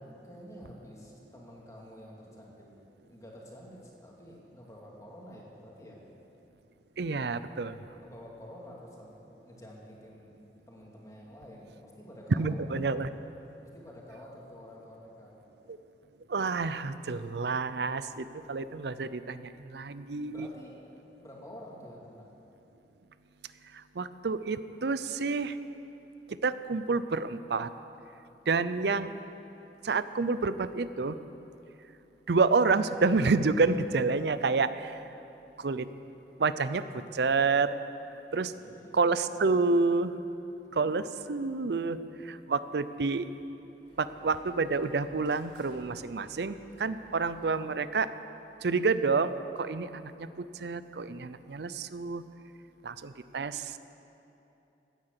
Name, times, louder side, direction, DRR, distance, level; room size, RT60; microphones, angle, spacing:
voice 1, 0.2-2.7 3.1-6.0 7.7-9.2 9.4-10.3 10.7-12.5 12.8-13.0 13.7-15.4 20.3-20.8 21.2-22.3 38.6-38.9, equal, 20° left, -3 dB, 2.4 m, -49 dB
voice 2, 7.0-7.8 12.3-13.1 15.7-15.8 16.3-20.5 23.7-25.6 26.3-27.7 28.5-29.1 29.8-31.2 32.3-35.0 35.6-35.9 36.4-37.7 38.3-38.5 38.9-40.1 40.7-43.3 44.0-48.1 48.6-52.2 52.8-53.8, right 4 dB, 65° right, 13 dB, 0.5 m, -29 dB
Dog, 43.8-48.0, equal, 45° right, 3.0 m, -58 dB
16.5 x 9.7 x 6.8 m, 2.9 s
head